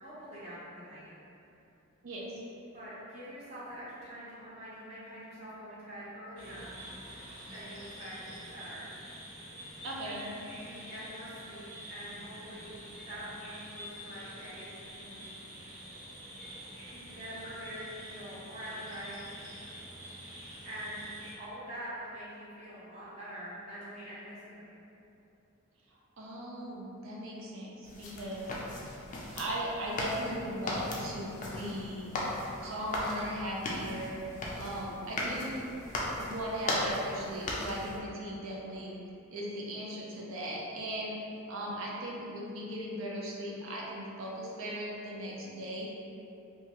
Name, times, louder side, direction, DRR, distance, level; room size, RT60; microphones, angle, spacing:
voice 1, 0.0-1.1 2.7-6.8 7.5-8.9 10.0-15.3 16.9-19.3 20.6-21.1 21.4-24.8 41.0-41.1, equal, 30° right, -10 dB, 0.7 m, -45 dB
voice 2, 2.0-2.4 9.8-10.3 25.9-28.5 29.4-32.1 32.6-34.2 34.6-35.6 36.2-38.9 39.3-41.2 41.5-45.9, equal, 70° right, -3 dB, 0.5 m, -38 dB
sound 1, 6.4-21.3, equal, 90° right, 1.0 m, -47 dB
sound 2, 27.8-38.0, left 1 dB, 35° left, 0.3 m, -37 dB
2.9 x 2.3 x 2.8 m, 2.8 s
head